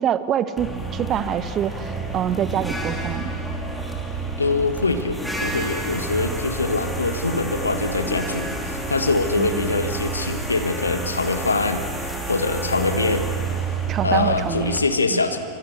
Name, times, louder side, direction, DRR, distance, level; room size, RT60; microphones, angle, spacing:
voice 1, 0.0-3.5 9.4-9.7 13.9-14.8 15.1-15.2, right 9 dB, 30° right, 13 dB, 1.0 m, -26 dB
sound 1, 0.6-14.8, right 3 dB, ahead, 3.0 m, -29 dB
voice 2, 4.4-11.9 12.3-13.3 14.0-15.4, left 3 dB, 75° left, 8 dB, 1.6 m, -23 dB
27.5 x 25.0 x 7.0 m, 2.5 s
figure-of-eight pair, 90°, 0 cm